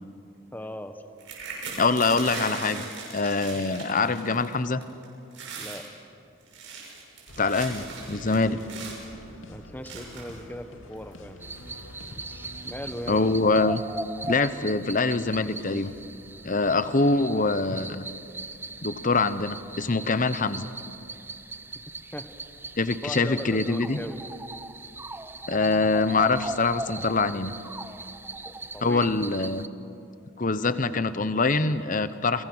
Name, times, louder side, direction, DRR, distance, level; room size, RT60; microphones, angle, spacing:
voice 1, 0.5-1.0 3.2-3.3 5.5-5.9 9.5-11.4 12.2-13.2 22.1-22.3 23.0-24.2 28.4-29.1, equal, 10° left, 8 dB, 1.2 m, -39 dB
sound 1, 1.2-4.5 4.8-5.1 5.3-5.9 6.4-9.1 9.9-10.4 11.1-11.2 11.5-11.8, right 4 dB, 65° right, 6.8 m, -39 dB
voice 2, 1.8-2.8 3.1-4.8 7.4-8.6 13.1-13.8 14.3-15.9 16.4-18.0 18.8-20.7 22.8-24.0 25.5-27.5 28.8-29.7 30.4-32.4, left 3 dB, 40° left, 13 dB, 0.9 m, -24 dB
sound 2, 7.3-13.5 15.2-16.5, left 1 dB, 80° left, 2.7 m, -47 dB
sound 3, 11.4-29.7, right 2 dB, 10° right, 0.6 m, -39 dB
30.0 x 23.5 x 6.3 m, 2.6 s
head